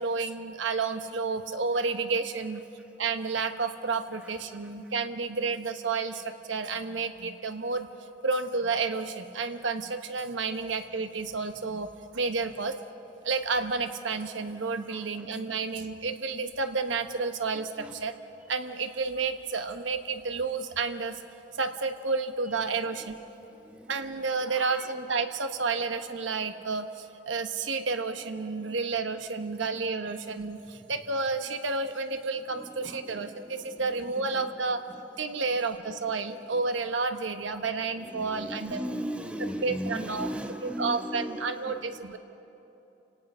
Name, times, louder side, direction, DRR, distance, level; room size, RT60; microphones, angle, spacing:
voice 1, 0.0-2.6 3.0-7.9 8.2-11.9 12.1-12.8 13.2-18.1 18.5-21.2 21.6-23.2 23.9-34.8 35.2-38.8 39.6-40.3 40.6-42.2, right 4 dB, 85° right, 8 dB, 1.1 m, -31 dB
voice 2, 17.5-17.9 23.5-23.9 24.5-24.9 30.8-30.9 32.6-33.8 34.2-34.5 38.0-41.9, equal, 5° right, 6 dB, 0.9 m, -38 dB
29.5 x 18.0 x 5.5 m, 3.0 s
head